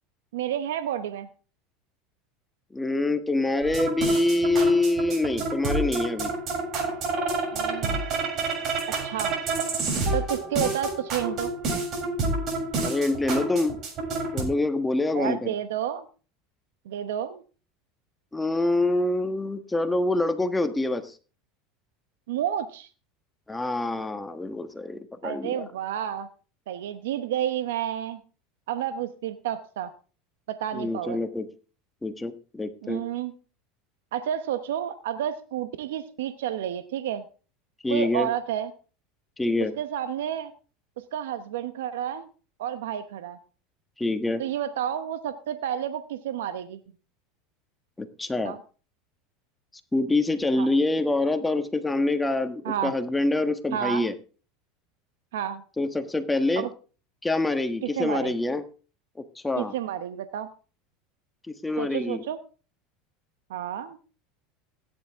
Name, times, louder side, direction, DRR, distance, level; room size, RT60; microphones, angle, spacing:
voice 1, 0.3-1.3 7.5-8.0 9.0-9.4 10.1-11.5 15.1-16.1 16.9-17.4 22.3-22.9 25.2-26.3 26.7-28.2 28.7-29.9 30.5-31.2 32.8-33.3 34.1-37.2 37.9-38.7 39.8-40.5 41.1-42.3 42.6-43.4 44.4-46.8 48.4-48.6 50.6-50.7 52.6-52.9 53.7-54.0 55.3-55.6 56.6-56.7 57.8-58.3 59.6-60.5 61.8-62.4 63.5-64.0, right 10 dB, 80° right, 10 dB, 0.9 m, -30 dB
voice 2, 2.7-6.3 12.8-13.8 14.3-15.5 18.3-21.1 23.5-25.7 30.7-31.5 32.0-33.0 37.8-38.3 39.4-39.7 44.0-44.4 48.0-48.5 49.9-54.1 55.8-56.7 57.2-58.6 59.3-59.7 61.5-62.2, left 2 dB, 10° left, 8 dB, 1.3 m, -25 dB
sound 1, 3.6-14.4, right 3 dB, 45° right, 7.3 m, -29 dB
16.5 x 10.0 x 3.6 m, 0.37 s
hypercardioid pair, 95°, 0 cm